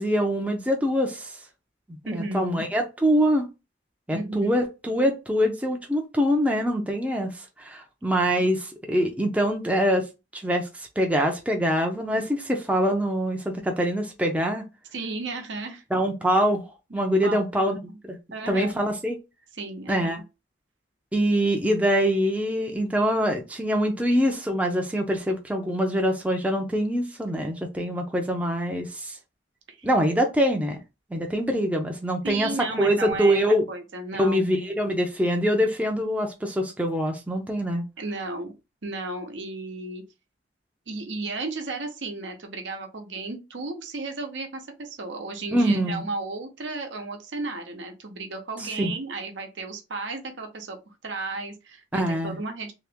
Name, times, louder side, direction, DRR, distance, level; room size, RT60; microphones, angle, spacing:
voice 1, 0.0-1.4 1.9-3.5 4.1-10.0 10.3-14.6 15.9-16.6 16.9-17.8 18.0-18.2 18.5-19.2 19.9-20.2 21.1-29.2 29.8-30.8 31.1-32.5 32.8-33.6 34.1-37.8 45.5-46.0 48.6-48.9 51.9-52.4, equal, 10° right, 0.5 m, -24 dB
voice 2, 2.1-2.7 4.1-4.6 14.9-15.8 16.9-18.0 18.3-18.8 19.6-20.2 29.7-29.9 32.2-33.4 33.7-34.4 38.0-38.5 38.8-40.0 40.9-52.7, right 3 dB, 75° right, 0.9 m, -34 dB
2.9 x 2.9 x 3.4 m
head